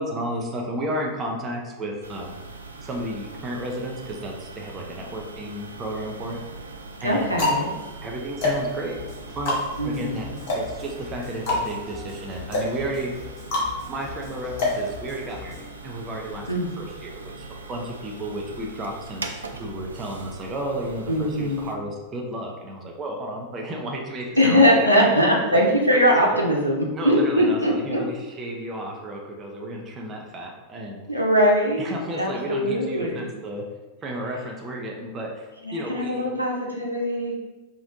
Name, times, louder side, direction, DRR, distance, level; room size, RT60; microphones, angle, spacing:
voice 1, 0.0-2.4 2.8-6.4 7.0-7.3 8.0-9.0 9.4-10.3 10.5-13.1 13.9-16.5 16.8-25.1 25.5-25.7 25.9-26.3 26.9-31.0 31.8-33.6 34.0-36.3, right 1 dB, 25° right, 0 dB, 0.6 m, -33 dB
sound 1, 2.0-21.7, right 3 dB, 75° right, 0.3 m, -41 dB
sound 2, 5.4-6.1 6.8-15.6, left 2 dB, 50° left, 1.1 m, -28 dB
voice 2, 7.0-7.7 9.8-10.4 16.5-16.7 21.1-21.7 24.4-28.0 31.1-33.3 35.6-37.4, equal, 90° left, -3 dB, 0.7 m, -21 dB
sound 3, 8.9-15.7, left 4 dB, 25° left, 0.9 m, -43 dB
5.1 x 2.5 x 2.6 m, 1.1 s
figure-of-eight pair, 90°, 0 cm